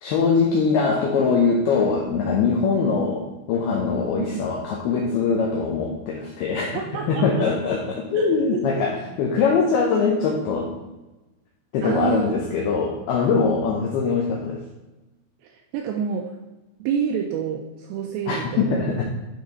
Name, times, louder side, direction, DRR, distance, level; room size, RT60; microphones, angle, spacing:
voice 1, 0.0-6.8 7.1-10.7 11.7-14.6 18.3-19.0, left 5 dB, 85° left, -1 dB, 2.2 m, -22 dB
voice 2, 6.7-7.3 8.1-8.3 8.5-8.6 11.8-12.7 15.4-16.3 16.8-18.8, right 7 dB, 90° right, 2 dB, 2.5 m, -28 dB
11.5 x 4.0 x 4.1 m, 1.1 s
omnidirectional pair, 5.6 m